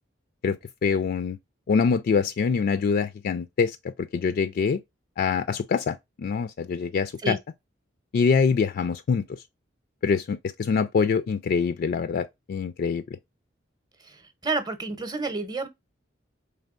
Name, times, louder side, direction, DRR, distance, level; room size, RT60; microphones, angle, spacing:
voice 1, 0.4-1.4 1.7-4.8 5.2-7.4 8.1-9.3 10.0-13.2, left 5 dB, 55° left, 0.3 m, -25 dB
voice 2, 14.0-15.7, right 3 dB, 20° right, 0.7 m, -30 dB
4.3 x 3.3 x 2.4 m
head